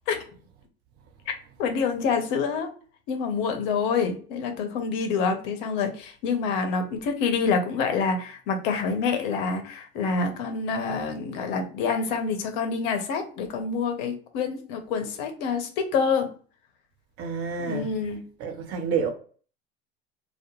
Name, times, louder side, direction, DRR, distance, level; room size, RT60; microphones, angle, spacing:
voice 1, 1.6-2.7 3.1-16.3 17.6-18.2, left 5 dB, 60° left, 0.8 m, -27 dB
voice 2, 17.2-17.9 18.4-19.1, right 6 dB, 45° right, 0.8 m, -28 dB
2.4 x 2.1 x 2.9 m
figure-of-eight pair, 75°, 32 cm